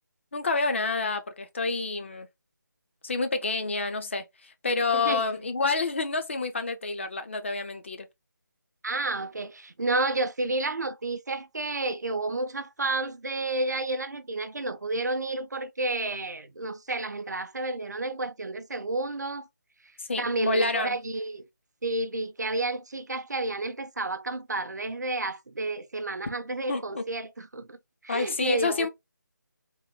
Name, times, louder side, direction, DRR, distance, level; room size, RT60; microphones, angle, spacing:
voice 1, 0.3-2.3 3.0-8.1 20.0-21.0 26.7-27.0 28.1-28.9, left 3 dB, 40° left, 0.6 m, -28 dB
voice 2, 4.9-5.2 8.8-19.5 20.2-21.4 21.8-27.8 28.0-28.9, right 2 dB, 60° right, 0.5 m, -30 dB
3.8 x 2.1 x 3.1 m
figure-of-eight pair, 155°, 10 cm